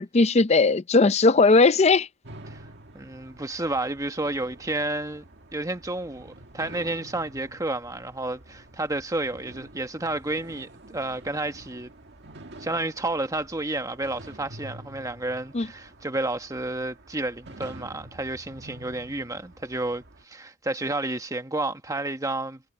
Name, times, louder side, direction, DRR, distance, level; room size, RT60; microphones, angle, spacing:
voice 1, 0.0-2.1 15.5-15.7, left 3 dB, 30° left, 0.5 m, -18 dB
sound 1, 2.2-20.2, right 1 dB, 55° right, 1.9 m, -48 dB
voice 2, 2.9-5.2 5.5-11.9 12.6-22.6, right 2 dB, 15° right, 1.3 m, -31 dB
head